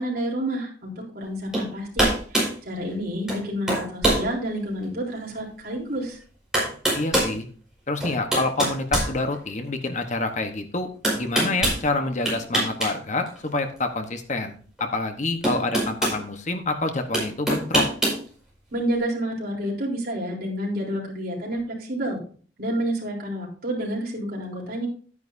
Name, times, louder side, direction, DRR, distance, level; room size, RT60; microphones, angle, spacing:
voice 1, 0.0-6.2 18.7-22.2 22.6-24.9, right 1 dB, 55° right, -2 dB, 3.8 m, -29 dB
sound 1, 1.5-1.7 2.0-2.5 3.3-3.4 3.7-4.2 4.8-4.9 6.0-6.1 6.5-7.3 8.0-9.7 11.0-11.8 12.2-12.9 13.2-13.4 14.8-14.9 15.4-16.2 17.1-18.2, right 1 dB, 5° right, 5.3 m, -23 dB
voice 2, 6.9-7.5 7.9-10.9 11.2-17.9, left 2 dB, 40° left, 6 dB, 1.1 m, -27 dB
12.0 x 9.7 x 2.7 m, 0.42 s
head